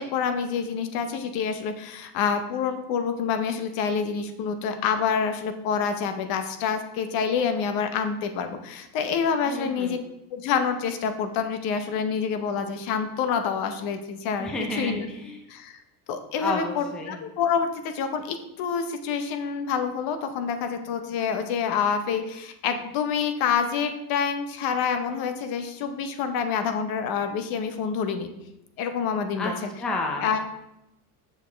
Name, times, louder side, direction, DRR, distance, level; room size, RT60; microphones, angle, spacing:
voice 1, 0.0-10.0 10.3-15.0 15.5-15.8 16.1-28.3 28.8-29.7 30.2-30.4, left 6 dB, 50° left, 8 dB, 0.8 m, -27 dB
voice 2, 9.5-10.0 14.4-15.4 16.4-17.2 29.4-29.5 29.8-30.2, left 2 dB, ahead, 1 dB, 0.4 m, -31 dB
6.6 x 5.1 x 3.4 m, 0.88 s
supercardioid pair, 135°, 45 cm